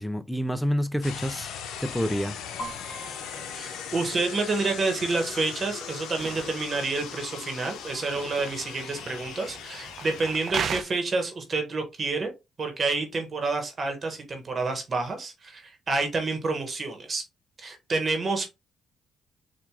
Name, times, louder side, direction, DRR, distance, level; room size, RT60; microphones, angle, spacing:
voice 1, 0.0-1.5 1.8-2.4, equal, 5° left, 0.4 m, -28 dB
sound 1, 1.0-10.5, left 8 dB, 85° left, 0.6 m, -39 dB
sound 2, 2.6-10.4, equal, 45° left, 1.3 m, -49 dB
sound 3, 2.9-10.8, right 6 dB, 55° right, 0.5 m, -39 dB
voice 2, 3.5-12.3 12.6-17.2 17.6-18.5, right 3 dB, 40° right, 1.2 m, -29 dB
4.4 x 2.5 x 3.6 m
cardioid pair, 90°, 0 cm